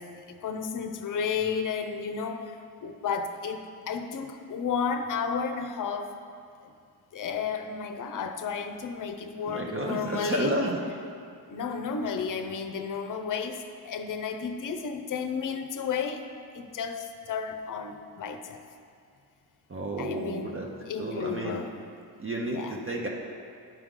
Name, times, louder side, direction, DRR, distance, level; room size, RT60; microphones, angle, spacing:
voice 1, 0.0-6.1 6.6-6.7 7.1-10.6 11.5-16.3 16.5-18.6 20.0-20.5 20.8-21.7 22.4-22.8, left 6 dB, 50° left, 7 dB, 0.7 m, -32 dB
voice 2, 9.4-10.8 19.7-20.7 21.0-21.6 22.2-23.1, right 1 dB, 30° right, -1 dB, 0.8 m, -31 dB
10.5 x 4.8 x 3.7 m, 2.3 s
cardioid pair, 90°, 41 cm